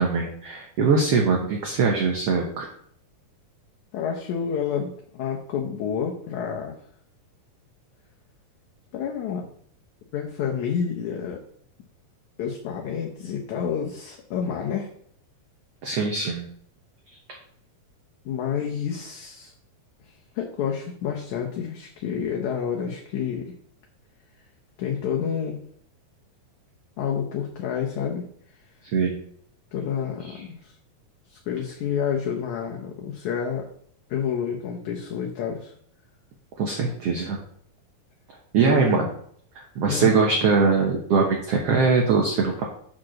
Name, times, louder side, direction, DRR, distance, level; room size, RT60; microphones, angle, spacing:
voice 1, 0.0-2.7 15.8-16.5 28.9-29.2 36.6-37.4 38.5-39.1 39.7-42.6, right 4 dB, 65° right, 0 dB, 1.6 m, -22 dB
voice 2, 3.9-6.8 8.9-9.5 10.1-11.4 12.4-14.9 18.3-19.5 20.0-23.5 24.8-25.6 27.0-28.3 29.7-30.7 31.3-33.7 34.1-35.7 38.6-39.1 39.8-40.2, left 7 dB, 70° left, 0 dB, 2.0 m, -29 dB
7.6 x 4.4 x 6.3 m, 0.63 s
omnidirectional pair, 4.1 m